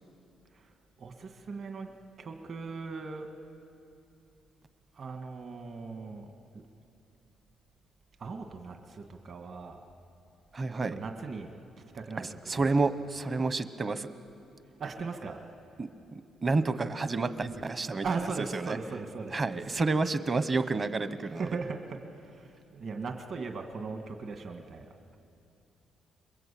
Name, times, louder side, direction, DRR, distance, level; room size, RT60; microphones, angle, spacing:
voice 1, 1.0-3.3 4.9-6.3 8.2-9.8 10.8-12.8 14.8-15.4 18.0-19.6 21.3-24.9, right 4 dB, 45° right, 4 dB, 1.9 m, -39 dB
voice 2, 10.5-10.9 12.2-14.1 15.8-18.3 18.5-18.8 19.3-21.5, right 3 dB, 25° right, 11 dB, 1.0 m, -30 dB
28.5 x 22.0 x 8.5 m, 2.7 s
cardioid pair, 140°, 0 cm